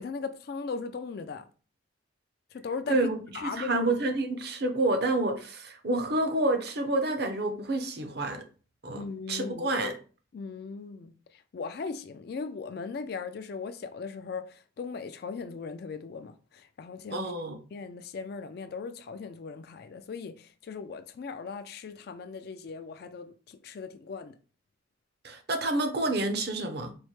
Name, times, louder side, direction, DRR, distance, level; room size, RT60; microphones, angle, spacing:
voice 1, 0.0-1.5 2.5-3.9 8.9-9.7 10.3-17.3 17.7-24.4, left 5 dB, 55° left, 0.3 m, -38 dB
voice 2, 2.9-8.4 8.8-9.0 9.3-10.0 17.1-17.6 25.2-26.9, right 2 dB, 55° right, 0.6 m, -28 dB
4.4 x 2.1 x 3.0 m
head